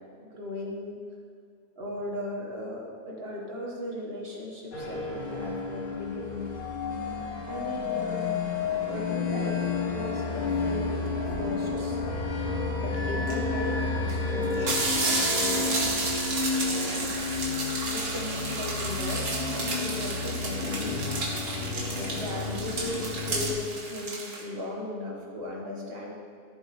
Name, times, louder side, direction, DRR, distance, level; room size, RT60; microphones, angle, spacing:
voice 1, 0.2-1.0 1.7-6.5 7.5-8.3 8.9-11.1 11.4-12.0 12.8-14.7 15.1-16.2 16.6-17.2 17.5-21.2 21.9-26.1, left 1 dB, 45° right, -2 dB, 1.9 m, -37 dB
sound 1, 4.7-23.5, left 4 dB, 85° left, 1.8 m, -31 dB
sound 2, 13.3-13.4 14.1-14.2 14.4-24.4, right 2 dB, 65° right, 1.8 m, -32 dB
14.0 x 7.2 x 3.3 m, 2.2 s
omnidirectional pair, 1.4 m